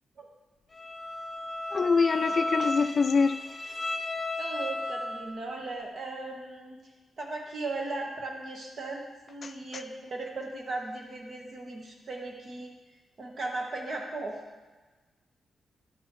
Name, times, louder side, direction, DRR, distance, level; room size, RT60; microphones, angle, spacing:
Bowed string instrument, 0.7-5.4, left 2 dB, 25° left, 0.7 m, -34 dB
voice 1, 1.7-3.4 9.4-9.5, left 5 dB, 40° left, 0.3 m, -24 dB
voice 2, 4.4-6.8 7.2-12.7 13.2-14.4, right 2 dB, 45° right, 1.3 m, -37 dB
10.5 x 6.3 x 3.1 m
wide cardioid pair, 145°, 0 cm